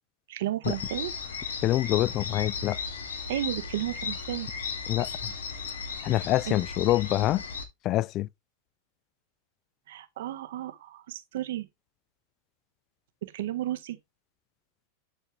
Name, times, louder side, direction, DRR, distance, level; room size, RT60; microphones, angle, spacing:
voice 1, 0.3-1.1 3.3-4.5 6.5-6.6 9.9-11.6 13.3-14.0, right 13 dB, 75° right, 1.5 m, -33 dB
sound 1, 0.6-7.6, left 5 dB, 90° left, 2.5 m, -36 dB
voice 2, 1.6-2.8 4.9-5.3 6.0-7.4 7.8-8.3, left 15 dB, 40° left, 0.4 m, -26 dB
11.0 x 4.4 x 3.4 m
hypercardioid pair, 120°, 0 cm